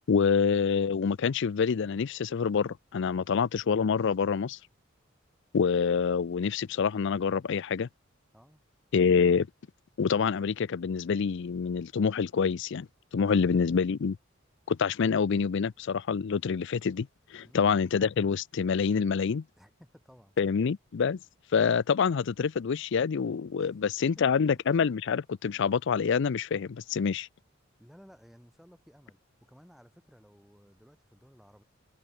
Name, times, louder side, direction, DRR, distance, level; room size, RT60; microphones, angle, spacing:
voice 1, 0.1-4.6 5.5-7.9 8.9-9.5 10.0-12.9 13.1-14.2 14.7-19.4 20.4-21.2 21.5-27.3, left 6 dB, 60° left, 0.4 m, -26 dB
voice 2, 19.6-20.4 23.6-23.7 24.5-24.6 27.8-31.6, equal, ahead, 5.8 m, -57 dB
head